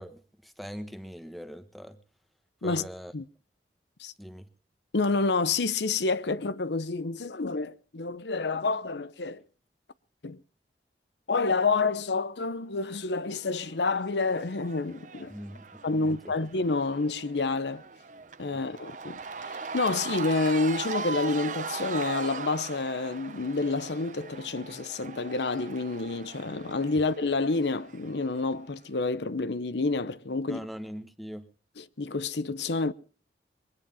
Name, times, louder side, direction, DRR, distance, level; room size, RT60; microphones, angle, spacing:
voice 1, 0.0-2.0 2.6-3.1 4.2-4.5 15.3-16.3 30.5-31.5, equal, ahead, 1.2 m, -41 dB
voice 2, 4.9-9.4 10.2-10.4 11.3-15.3 15.8-17.8 18.4-30.7 31.8-32.9, left 3 dB, 85° left, 0.8 m, -29 dB
Cheering / Crowd, 13.2-28.5, right 5 dB, 45° right, 0.8 m, -40 dB
22.5 x 9.9 x 5.6 m
head